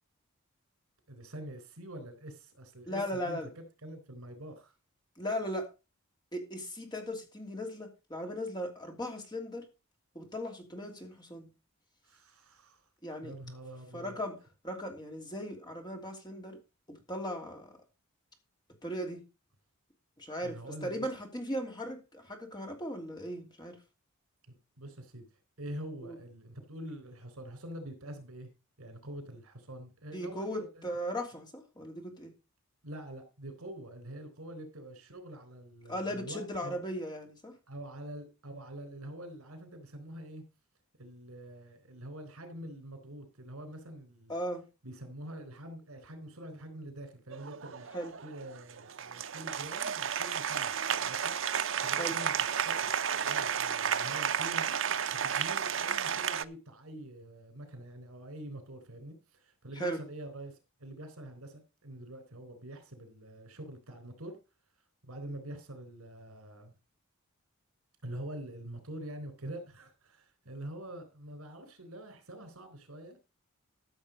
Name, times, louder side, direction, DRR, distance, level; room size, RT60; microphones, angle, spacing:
voice 1, 1.1-3.4 3.8-4.7 12.0-12.9 13.2-14.2 20.4-21.1 24.5-25.3 25.6-28.5 28.8-30.9 32.8-36.8 37.7-40.4 41.0-44.4 44.8-47.9 48.2-51.4 51.8-54.8 55.1-64.4 65.0-66.7 68.0-73.2, right 1 dB, 80° right, 3.8 m, -45 dB
voice 2, 2.9-3.5 5.2-5.7 6.3-9.6 10.1-11.5 13.0-13.3 13.9-14.4 14.6-16.6 17.1-17.8 18.8-19.2 20.2-23.8 26.0-26.2 30.1-32.3 35.9-37.5 44.3-44.6 47.9-48.1 52.0-52.2 59.8-60.0, equal, 20° left, 2.9 m, -37 dB
Applause, 47.3-56.4, right 8 dB, 60° right, 0.6 m, -32 dB
13.5 x 7.2 x 5.1 m
head